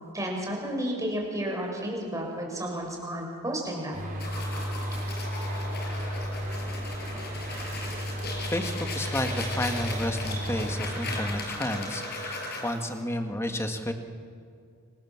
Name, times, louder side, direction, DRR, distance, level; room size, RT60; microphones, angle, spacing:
voice 1, 0.1-4.1, equal, 15° right, -1 dB, 6.3 m, -32 dB
sound 1, 3.9-11.4, equal, 40° right, 4.6 m, -33 dB
sound 2, 4.2-12.9, left 2 dB, 45° left, 5.8 m, -37 dB
voice 2, 8.5-13.9, left 1 dB, 10° left, 5 dB, 1.9 m, -31 dB
29.0 x 25.0 x 7.4 m, 2.3 s
head